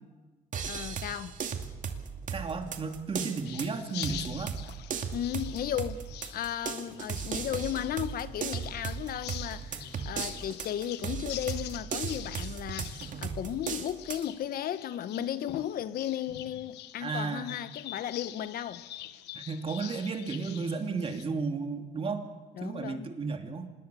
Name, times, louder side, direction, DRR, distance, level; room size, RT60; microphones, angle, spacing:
sound 1, 0.5-14.3, right 6 dB, 50° right, 2.4 m, -37 dB
voice 1, 0.6-1.4 5.1-6.0 6.3-18.8 22.5-23.1, left 10 dB, 60° left, 1.2 m, -35 dB
voice 2, 2.3-4.5 17.0-17.5 19.3-22.2 22.6-23.7, right 4 dB, 35° right, 2.8 m, -33 dB
sound 2, 3.4-21.2, left 13 dB, 80° left, 1.2 m, -45 dB
26.0 x 20.5 x 7.0 m
cardioid pair, 110°, 17 cm